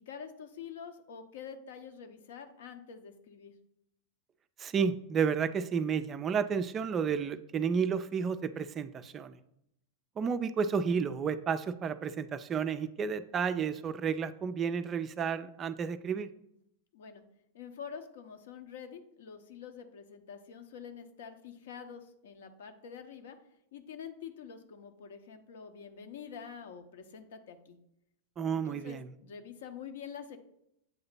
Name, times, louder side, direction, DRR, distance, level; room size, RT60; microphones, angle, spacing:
voice 1, 0.0-3.5 16.9-17.2 17.5-23.4 23.7-27.8 28.4-30.4, left 7 dB, 60° left, 7 dB, 0.7 m, -46 dB
voice 2, 4.6-9.4 10.2-16.3 28.4-29.1, right 6 dB, 25° right, 11 dB, 0.3 m, -31 dB
7.8 x 2.8 x 5.6 m, 0.78 s
figure-of-eight pair, 90°, 0 cm